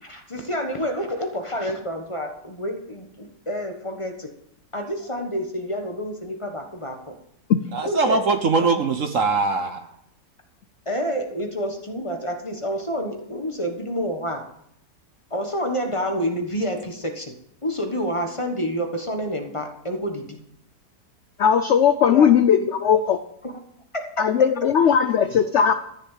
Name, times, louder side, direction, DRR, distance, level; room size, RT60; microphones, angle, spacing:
voice 1, 0.0-4.3 4.7-7.1 7.8-8.2 8.5-8.7 10.8-14.4 15.3-17.3 17.6-20.4 22.1-22.3 23.4-23.5 23.9-24.3, equal, 20° left, 4 dB, 1.3 m, -28 dB
voice 2, 7.7-9.9, right 4 dB, 55° right, 8 dB, 1.1 m, -22 dB
voice 3, 21.4-23.2 24.2-25.7, left 8 dB, 70° left, 10 dB, 0.6 m, -18 dB
13.5 x 6.8 x 7.4 m, 0.73 s
omnidirectional pair, 1.9 m